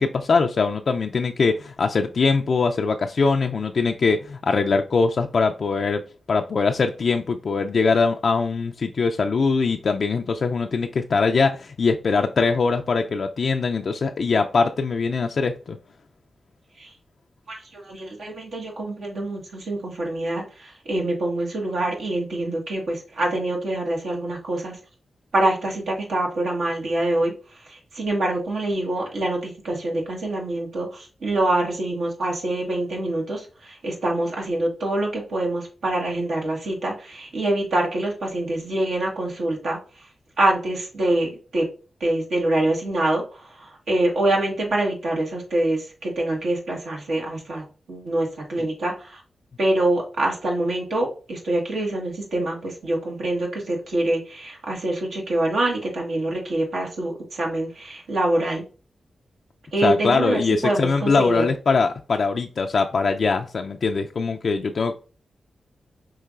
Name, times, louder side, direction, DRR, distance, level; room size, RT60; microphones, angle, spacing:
voice 1, 0.0-6.0 6.3-15.8 59.8-64.9, left 4 dB, 65° left, 4 dB, 0.3 m, -22 dB
voice 2, 17.5-24.8 25.3-27.3 27.7-39.8 40.4-41.7 42.0-49.2 49.6-58.6 59.7-61.5, right 1 dB, 80° right, -1 dB, 1.3 m, -25 dB
5.5 x 3.0 x 2.4 m, 0.36 s
cardioid pair, 45°, 0 cm